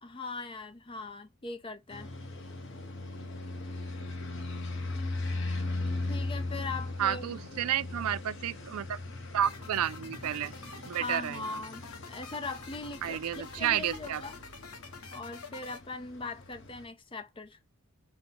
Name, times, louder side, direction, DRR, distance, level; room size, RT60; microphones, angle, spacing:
voice 1, 0.0-2.1 6.1-7.4 10.9-14.4 15.1-17.7, left 3 dB, 25° left, 0.6 m, -40 dB
sound 1, 1.9-16.9, left 2 dB, 55° left, 0.9 m, -39 dB
voice 2, 7.0-9.0 9.3-10.5 10.9-11.4 13.0-14.2, right 10 dB, 80° right, 0.4 m, -31 dB
sound 2, 9.4-15.8, left 4 dB, 85° left, 1.5 m, -47 dB
5.8 x 2.2 x 4.0 m
head